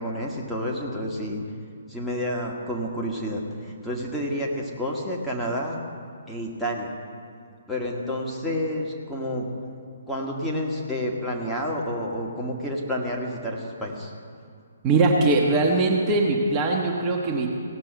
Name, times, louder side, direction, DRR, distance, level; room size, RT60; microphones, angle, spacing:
voice 1, 0.0-1.4 1.9-5.8 6.3-6.9 7.7-9.5 10.1-14.1, equal, 5° left, -4 dB, 1.5 m, -29 dB
voice 2, 14.8-17.5, right 3 dB, 25° right, -1 dB, 1.2 m, -21 dB
17.0 x 6.8 x 6.0 m, 2.3 s
figure-of-eight pair, 130°, 0 cm